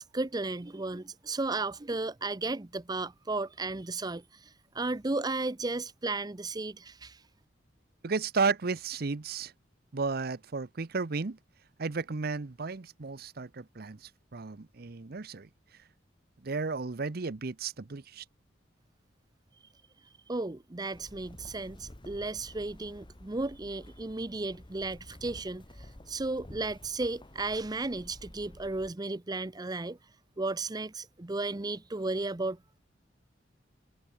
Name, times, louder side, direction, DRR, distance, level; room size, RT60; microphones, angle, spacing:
voice 1, 0.0-7.2 20.3-30.0 30.4-32.6, right 2 dB, 20° right, 0.7 m, -34 dB
voice 2, 8.0-9.5 9.9-11.4 11.8-15.5 16.4-18.2, right 4 dB, 55° right, 0.7 m, -33 dB
sound 1, 20.9-28.9, left 1 dB, 25° left, 1.3 m, -51 dB
head